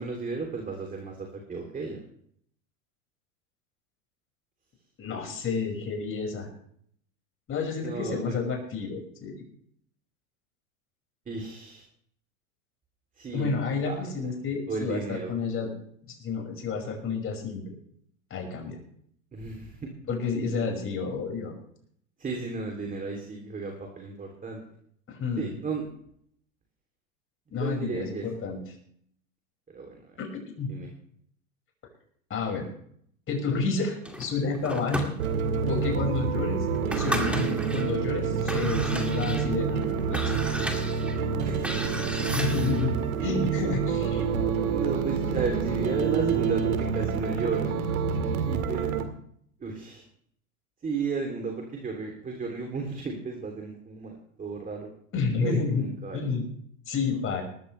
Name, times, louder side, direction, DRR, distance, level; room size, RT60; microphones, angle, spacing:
voice 1, 0.0-2.0 5.2-5.3 7.8-8.4 11.3-11.8 13.2-13.5 13.8-14.0 14.7-15.3 19.3-19.9 22.2-24.6 25.4-25.9 27.6-28.2 29.7-30.0 30.7-30.9 41.4-42.0 44.7-47.7 48.4-49.0 49.6-50.0 50.8-54.9 55.4-56.2, right 4 dB, 20° right, 2 dB, 3.0 m, -33 dB
voice 2, 5.0-6.5 7.5-9.4 13.3-15.7 16.1-17.6 18.3-18.8 20.1-21.5 25.1-25.5 27.5-28.6 30.2-30.3 30.6-30.7 32.3-32.7 33.3-35.1 35.7-36.7 37.0-40.3 42.2-44.3 55.1-55.8 56.1-56.5 56.9-57.4, left 4 dB, 30° left, 2 dB, 5.7 m, -30 dB
sound 1, 34.0-35.6 36.1-36.2 36.7-37.9 38.3-42.9, equal, 5° right, 2.2 m, -34 dB
sound 2, 35.2-49.0, right 6 dB, 90° right, 2.2 m, -27 dB
20.0 x 14.0 x 3.3 m, 0.65 s
hypercardioid pair, 115°, 41 cm